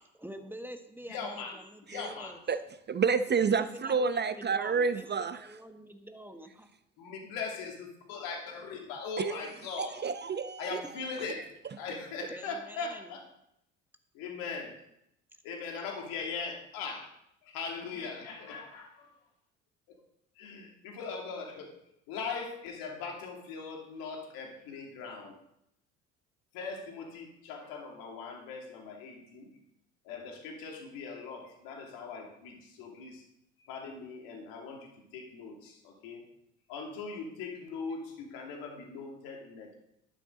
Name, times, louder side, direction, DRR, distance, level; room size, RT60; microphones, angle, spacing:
voice 1, 0.2-2.4 3.4-6.7 12.3-13.2, right 1 dB, 5° right, 1.4 m, -46 dB
voice 2, 1.1-1.6 1.9-2.3 7.0-10.0 10.6-11.5 11.8-13.2 14.1-14.7 15.4-17.1 17.4-19.1 20.4-21.7 22.1-25.3 26.5-29.5 30.0-33.2 33.6-36.3 36.7-39.7, left 5 dB, 65° left, 2.8 m, -40 dB
voice 3, 2.9-5.4 9.2-9.4 9.8-10.7, right 5 dB, 30° right, 0.7 m, -29 dB
11.5 x 11.0 x 4.0 m
hypercardioid pair, 60°, 37 cm